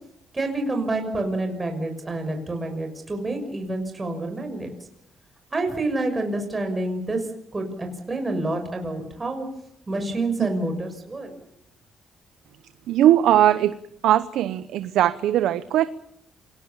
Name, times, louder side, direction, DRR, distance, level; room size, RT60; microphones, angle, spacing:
voice 1, 0.3-4.7 5.5-7.3 7.5-9.5 9.9-11.3, right 2 dB, 25° right, 4 dB, 6.4 m, -28 dB
voice 2, 12.9-13.8 14.0-15.8, right 12 dB, 85° right, 14 dB, 0.8 m, -19 dB
27.5 x 19.5 x 7.2 m, 0.72 s
cardioid pair, 90°, 0 cm